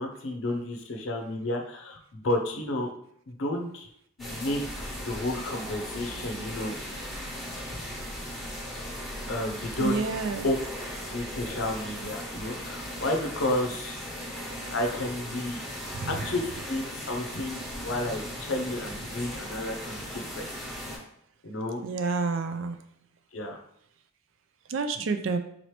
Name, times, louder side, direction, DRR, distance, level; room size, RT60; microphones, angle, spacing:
voice 1, 0.0-2.9 3.3-3.9 4.2-6.8 9.3-10.0 10.4-10.6 11.0-14.0 14.7-15.6 16.1-20.5 21.4-21.8 23.3-23.6, left 1 dB, 65° left, 3 dB, 0.6 m, -31 dB
sound 1, 4.2-21.0, equal, ahead, 1.2 m, -37 dB
voice 2, 9.8-10.5 15.9-16.1 21.8-22.8 24.7-25.4, right 4 dB, 65° right, 8 dB, 0.4 m, -29 dB
3.9 x 2.9 x 3.2 m, 0.70 s
head